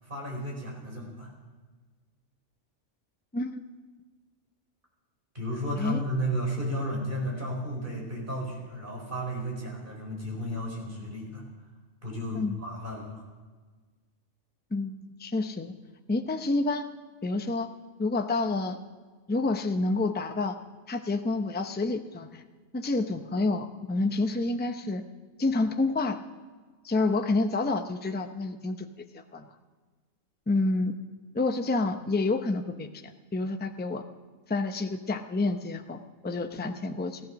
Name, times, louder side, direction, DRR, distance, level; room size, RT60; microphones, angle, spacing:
voice 1, 0.0-1.3 5.3-11.4 12.0-13.3, equal, 40° right, -1 dB, 4.7 m, -33 dB
voice 2, 15.2-15.7 16.1-16.8 17.2-17.7 18.0-18.8 19.3-20.6 20.9-22.4 22.7-25.0 25.4-26.2 26.8-29.5 30.5-31.0 31.3-34.0 34.5-37.2, left 3 dB, 10° left, 6 dB, 0.5 m, -28 dB
15.5 x 13.5 x 6.3 m, 1.4 s
omnidirectional pair, 1.4 m